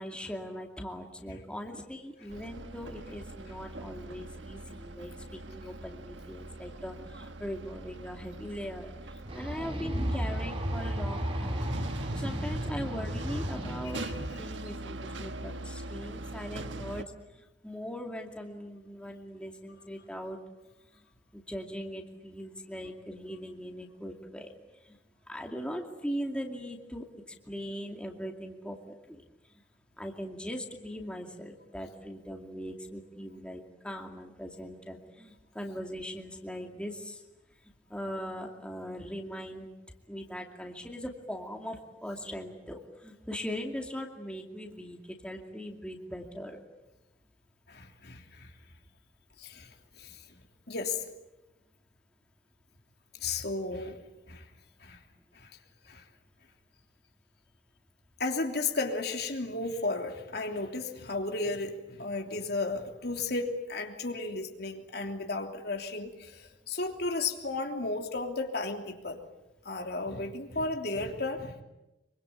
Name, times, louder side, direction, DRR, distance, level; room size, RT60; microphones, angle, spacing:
voice 1, 0.0-11.7 12.1-17.0 17.4-20.4 21.3-24.5 25.3-27.1 27.5-29.2 30.0-37.2 37.9-39.7 40.1-45.0 45.2-46.6, equal, 5° left, 2 dB, 2.4 m, -40 dB
sound 1, 2.3-17.0, right 2 dB, 90° right, 1.4 m, -41 dB
sound 2, 9.3-14.3, equal, 30° right, 2.7 m, -34 dB
voice 2, 47.7-48.5 49.4-50.2 50.7-51.1 53.2-54.0 54.3-54.5 54.8-55.0 55.3-55.5 55.8-56.0 58.2-69.2 69.6-71.6, left 3 dB, 60° left, 3 dB, 3.1 m, -34 dB
25.0 x 24.5 x 8.6 m, 0.99 s
head